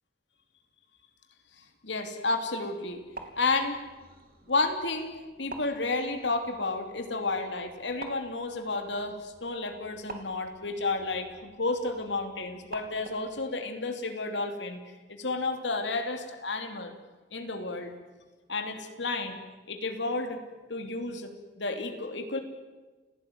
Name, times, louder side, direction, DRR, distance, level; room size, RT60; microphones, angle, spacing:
voice 1, 1.6-3.1 3.3-3.8 4.5-14.8 15.1-16.9 17.3-18.0 18.5-19.4 19.7-20.4 20.7-21.3 21.6-22.4, left 3 dB, 80° left, 6 dB, 3.0 m, -31 dB
sound 1, 2.9-13.4, right 3 dB, 50° right, 3.1 m, -49 dB
29.5 x 17.5 x 9.5 m, 1.3 s
head